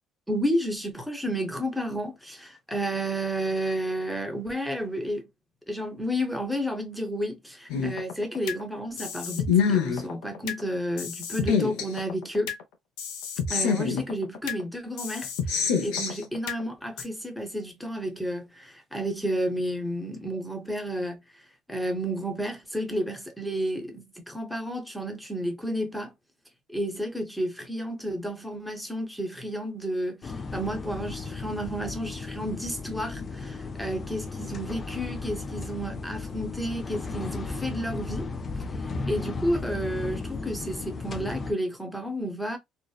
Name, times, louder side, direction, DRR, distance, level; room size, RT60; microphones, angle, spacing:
voice 1, 0.3-5.3 5.7-12.5 13.5-15.3 15.8-21.2 21.7-26.1 26.7-38.3 38.8-42.6, equal, ahead, 0.7 m, -31 dB
sound 1, 7.7-8.6 9.0-10.6 11.0-12.6 13.0-14.6 15.0-16.6 17.0-17.1, left 6 dB, 90° left, 0.6 m, -27 dB
sound 2, 30.2-41.5, left 3 dB, 35° left, 0.5 m, -35 dB
2.7 x 2.0 x 2.3 m
cardioid pair, 100°, 0 cm